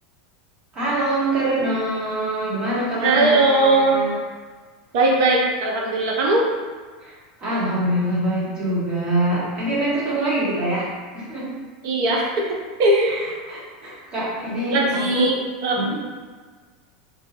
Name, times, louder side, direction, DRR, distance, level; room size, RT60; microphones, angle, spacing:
voice 1, 0.7-4.2 7.0-7.1 7.4-10.9 11.1-11.5 13.1-13.2 13.5-15.3 15.7-16.0, right 1 dB, 35° right, -8 dB, 1.3 m, -24 dB
voice 2, 3.0-4.0 4.9-6.4 11.8-13.3 14.7-15.4 15.6-15.8, right 2 dB, 65° right, -1 dB, 0.6 m, -19 dB
2.7 x 2.2 x 2.8 m, 1.5 s
hypercardioid pair, 95°, 3 cm